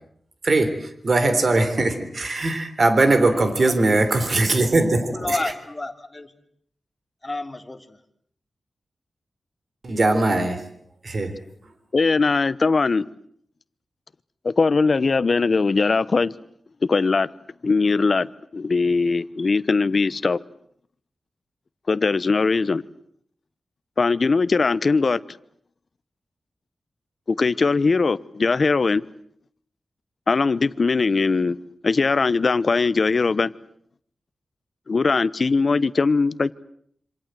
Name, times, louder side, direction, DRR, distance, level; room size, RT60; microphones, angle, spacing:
voice 1, 1.0-5.4 9.8-10.6 11.0-11.3, right 2 dB, 50° right, 3.8 m, -20 dB
voice 2, 3.7-4.1 5.1-6.3 7.2-8.0, left 2 dB, 20° left, 3.3 m, -31 dB
voice 3, 11.9-13.1 14.4-16.3 16.9-17.3 17.6-18.3 18.5-20.4 21.9-22.8 24.0-25.2 27.3-29.0 30.3-31.6 31.8-33.5 34.9-36.5, left 4 dB, 50° left, 1.1 m, -20 dB
27.0 x 26.5 x 7.8 m
wide cardioid pair, 105°, 0 cm